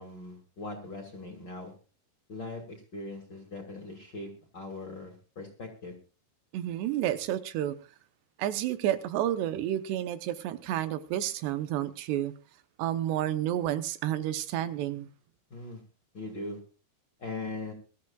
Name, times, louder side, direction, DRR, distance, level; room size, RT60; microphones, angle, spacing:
voice 1, 0.0-1.7 2.3-6.0 15.5-15.8 16.1-16.6 17.2-17.7, left 2 dB, 35° left, 2.1 m, -40 dB
voice 2, 6.5-7.8 8.4-12.3 12.8-15.1, right 12 dB, 80° right, 3.0 m, -30 dB
23.0 x 13.5 x 2.3 m
omnidirectional pair, 4.9 m